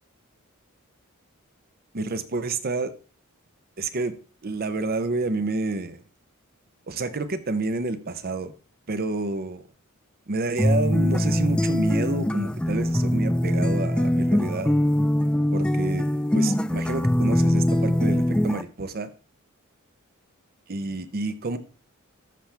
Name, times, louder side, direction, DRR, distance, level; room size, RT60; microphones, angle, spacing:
voice 1, 1.9-2.9 3.8-4.1 4.4-6.0 6.9-8.5 8.9-9.7 10.3-14.8 15.5-16.0 16.3-19.1 20.7-21.6, right 3 dB, 45° right, 0.8 m, -29 dB
sound 1, 10.6-18.6, left 1 dB, 5° left, 0.3 m, -22 dB
13.5 x 5.9 x 3.4 m
head